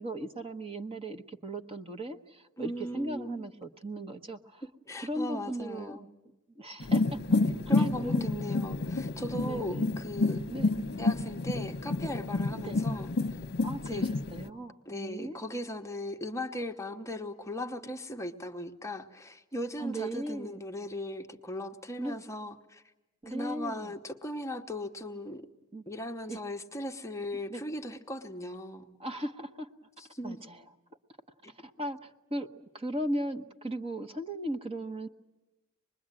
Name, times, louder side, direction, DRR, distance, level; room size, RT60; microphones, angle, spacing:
voice 1, 0.0-4.6 5.0-6.1 6.5-7.4 7.8-8.6 9.4-10.0 10.5-10.7 12.5-12.7 13.6-15.4 19.8-20.6 22.0-22.2 23.2-23.9 25.7-25.8 26.3-26.4 27.5-27.6 29.0-29.7 30.2-30.6 31.6-35.1, right 1 dB, 25° right, 6 dB, 1.1 m, -37 dB
voice 2, 2.6-3.5 4.9-6.0 7.7-10.4 11.0-13.1 13.8-14.0 14.9-22.8 23.3-25.4 25.9-28.9 30.0-30.4 31.4-31.5, left 1 dB, 15° left, 5 dB, 0.9 m, -38 dB
sound 1, 6.8-14.5, left 3 dB, 45° left, 1.0 m, -29 dB
25.5 x 21.0 x 9.0 m, 1.0 s
head